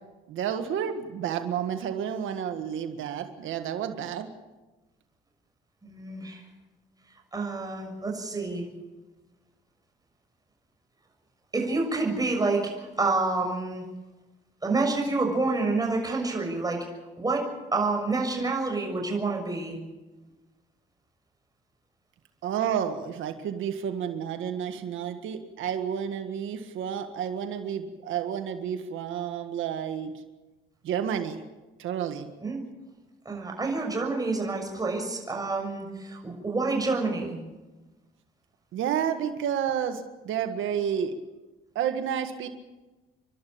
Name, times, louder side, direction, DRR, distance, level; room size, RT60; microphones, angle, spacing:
voice 1, 0.3-4.3 22.4-30.1 30.8-31.4 31.8-32.3 38.7-41.1 41.7-42.5, right 8 dB, 80° right, 6 dB, 1.7 m, -30 dB
voice 2, 5.8-6.4 7.3-8.7 11.5-13.8 14.6-16.8 17.2-19.8 32.4-32.6 33.2-37.3, right 3 dB, 20° right, 1 dB, 6.7 m, -28 dB
30.0 x 12.0 x 8.7 m, 1.2 s
cardioid pair, 90°, 20 cm